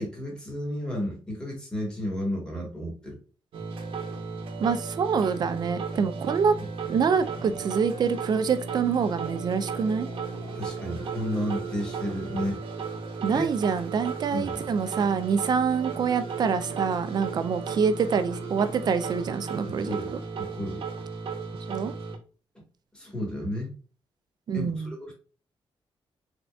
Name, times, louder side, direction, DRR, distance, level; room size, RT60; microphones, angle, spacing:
voice 1, 0.0-3.2 10.5-12.6 13.3-13.5 14.3-14.6 19.7-20.1 20.4-20.8 22.9-23.7 24.5-25.1, equal, 10° left, -1 dB, 1.4 m, -32 dB
sound 1, 3.5-22.2, right 5 dB, 70° right, 0.8 m, -35 dB
voice 2, 4.6-6.6 6.9-10.1 13.2-20.0 21.7-21.9 24.5-25.0, right 6 dB, 45° right, 11 dB, 0.4 m, -26 dB
3.8 x 3.4 x 2.2 m, 0.38 s
wide cardioid pair, 175°, 10 cm